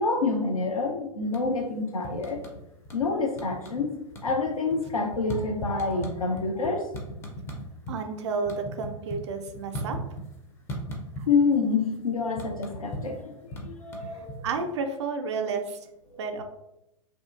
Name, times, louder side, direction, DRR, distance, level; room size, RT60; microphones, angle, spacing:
voice 1, 0.0-2.4 2.9-3.9 4.2-6.9 11.3-14.5 16.1-16.2, left 4 dB, 80° left, 2 dB, 0.5 m, -27 dB
sound 1, 1.2-1.7 2.0-3.1 3.3-3.8 4.1-8.0 8.3-10.4 10.7-11.5 11.8-14.7, equal, 15° left, 0.4 m, -37 dB
voice 2, 7.9-10.0 14.4-15.8 16.2-16.4, right 4 dB, 55° right, 7 dB, 0.4 m, -31 dB
2.7 x 2.3 x 2.3 m, 0.87 s
figure-of-eight pair, 95°, 18 cm